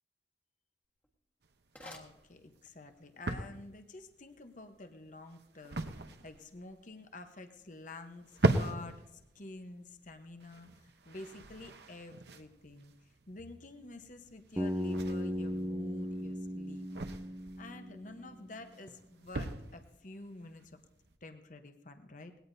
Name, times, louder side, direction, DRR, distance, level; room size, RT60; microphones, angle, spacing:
sound 1, 0.8-2.9, left 1 dB, 10° left, 1.5 m, -55 dB
sound 2, 1.4-21.2, right 2 dB, 65° right, 0.9 m, -40 dB
voice 1, 1.8-12.9 13.3-16.9 17.6-20.8 21.2-22.3, left 2 dB, 45° left, 7 dB, 1.0 m, -49 dB
Bass guitar, 14.6-18.5, equal, 15° right, 0.6 m, -37 dB
20.0 x 17.0 x 2.7 m, 0.89 s
head